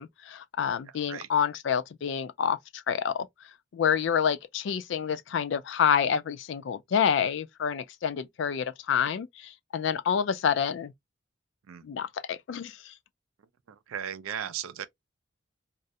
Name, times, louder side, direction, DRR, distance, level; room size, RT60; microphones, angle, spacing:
voice 1, 0.0-3.3 3.7-10.9 11.8-12.9, left 7 dB, 60° left, 0.3 m, -28 dB
voice 2, 13.7-14.8, right 9 dB, 85° right, 0.4 m, -36 dB
2.4 x 2.0 x 2.6 m
head